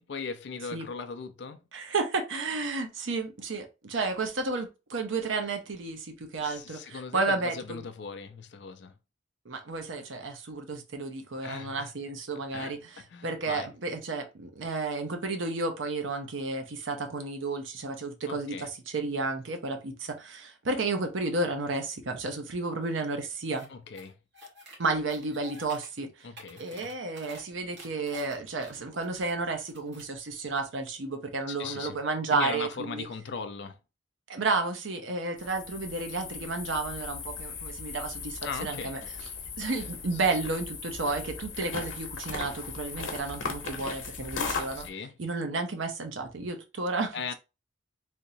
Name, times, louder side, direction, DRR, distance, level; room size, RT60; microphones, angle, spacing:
voice 1, 0.0-1.6 6.4-8.9 11.4-11.9 12.5-13.7 18.3-18.7 23.7-24.2 26.2-27.0 31.5-32.0 32.3-33.8 38.4-39.0 40.1-40.4 44.7-45.1 47.1-47.3, left 5 dB, 65° left, 0.4 m, -39 dB
voice 2, 1.7-7.8 9.4-23.7 24.8-26.3 26.6-33.1 34.3-39.0 39.6-44.9 45.2-47.3, right 3 dB, 85° right, 0.8 m, -32 dB
sound 1, 23.5-23.7 23.9-24.8 25.1-25.9 26.2-27.4 27.7-29.3 29.6-30.1, equal, 65° right, 1.5 m, -50 dB
sound 2, 35.4-44.9, left 5 dB, 90° left, 0.8 m, -38 dB
3.5 x 2.8 x 2.6 m
head